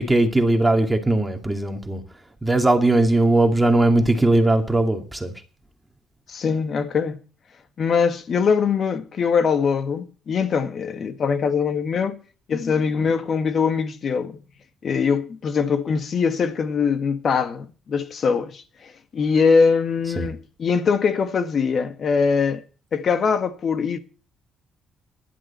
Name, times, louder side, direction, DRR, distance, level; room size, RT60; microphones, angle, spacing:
voice 1, 0.0-2.0 2.4-5.3 20.2-20.3, right 2 dB, 10° right, 2.3 m, -19 dB
voice 2, 6.3-7.2 7.8-12.2 12.5-14.4 14.8-22.6 22.9-24.0, left 5 dB, 55° left, 1.5 m, -22 dB
15.0 x 11.0 x 4.4 m
cardioid pair, 90°, 0 cm